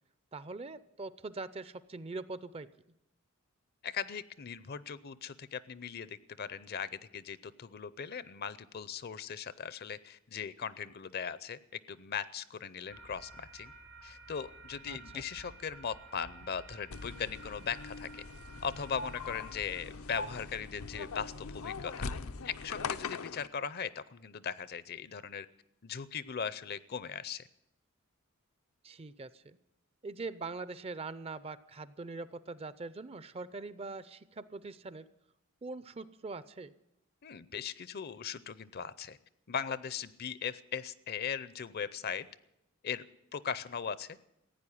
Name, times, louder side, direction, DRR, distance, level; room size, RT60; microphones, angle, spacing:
voice 1, 0.3-2.7 14.9-15.2 28.8-29.6 30.0-35.1 35.6-36.7, right 3 dB, 25° right, 16 dB, 0.5 m, -42 dB
voice 2, 3.8-13.7 14.0-18.2 18.6-22.1 22.4-25.5 25.8-27.5 37.2-39.2 39.5-42.3 42.8-43.1 43.3-44.2, left 7 dB, 45° left, 17 dB, 0.6 m, -39 dB
sound 1, 12.9-19.8, right 2 dB, 80° right, 1.7 m, -53 dB
sound 2, 16.9-23.5, left 4 dB, 85° left, 0.7 m, -41 dB
15.5 x 9.2 x 10.0 m, 0.85 s
head